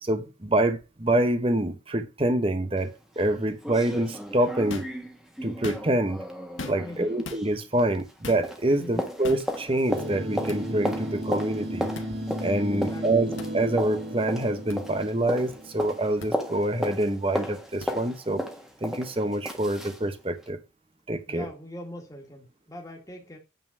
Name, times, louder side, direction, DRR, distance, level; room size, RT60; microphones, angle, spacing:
voice 1, 0.0-4.9 5.4-6.2 6.7-11.9 12.4-18.4 18.8-20.6 21.1-21.5, right 1 dB, 30° right, 1.1 m, -26 dB
sound 1, 2.8-2.9 3.2-3.3 3.6-8.2 8.4-20.0 20.4-20.5, equal, ahead, 1.3 m, -35 dB
sound 2, 4.7-5.0 5.5-6.1 6.6-7.0 7.2-7.4 8.2-8.5 9.2-9.5 10.5-10.6 11.9-12.1 13.4-13.5 14.7-14.8 16.2-16.3 17.8-17.9, left 3 dB, 90° left, 1.5 m, -38 dB
voice 2, 6.8-7.2 8.8-9.1 12.7-13.3 21.3-23.4, left 1 dB, 15° left, 2.0 m, -42 dB
sound 3, 9.9-16.5, right 1 dB, 55° right, 1.9 m, -35 dB
9.2 x 4.0 x 6.1 m
head